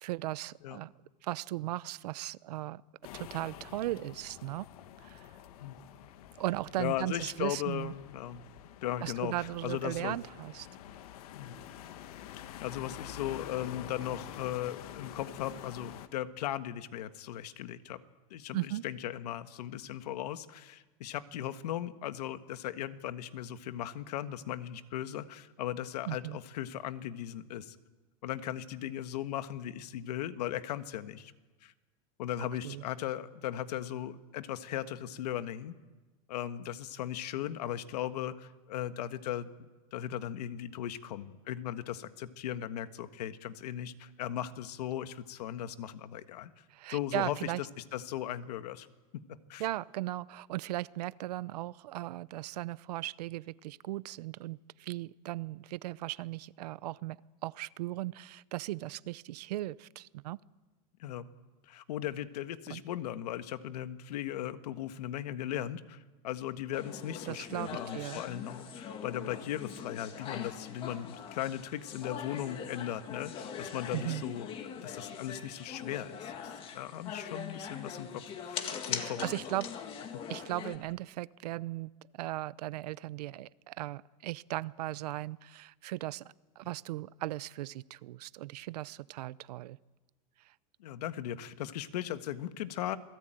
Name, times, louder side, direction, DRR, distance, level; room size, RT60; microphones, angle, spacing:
voice 1, 0.0-0.9 1.2-2.8 3.1-4.7 5.0-5.3 6.4-7.9 9.0-10.7 18.5-18.8 26.1-26.4 32.6-32.8 46.7-47.6 49.6-57.2 57.4-60.4 62.7-62.8 67.3-68.2 73.9-74.2 78.9-79.7 80.3-89.8 90.5-90.6, right 17 dB, 85° right, 19 dB, 0.7 m, -37 dB
sound 1, 3.0-16.1, left 11 dB, 70° left, 1.7 m, -48 dB
voice 2, 6.8-8.4 8.8-10.2 11.3-11.6 12.3-18.0 18.3-27.8 28.2-31.3 31.6-31.7 32.2-35.7 36.3-39.5 39.9-46.5 46.9-47.7 47.9-48.9 49.3-49.6 61.0-61.3 61.7-74.5 74.7-79.4 80.1-80.2 90.8-93.0, left 11 dB, 90° left, 10 dB, 1.5 m, -38 dB
sound 2, 66.7-80.8, left 7 dB, 25° left, 2.0 m, -42 dB
27.5 x 19.0 x 9.1 m, 1.2 s
supercardioid pair, 165°, 20 cm